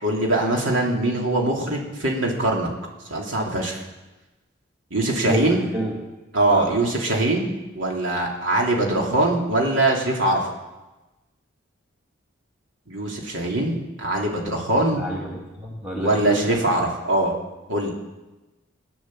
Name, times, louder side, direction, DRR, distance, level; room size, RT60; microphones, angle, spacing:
voice 1, 0.0-2.7 3.1-3.8 4.9-5.7 6.3-10.4 12.9-15.0 16.0-17.3 17.7-17.9, right 2 dB, 70° right, -1 dB, 2.9 m, -22 dB
voice 2, 5.3-6.0 6.5-6.7 14.7-16.6, right 1 dB, 5° right, -5 dB, 2.1 m, -30 dB
16.5 x 10.0 x 7.7 m, 1.1 s
head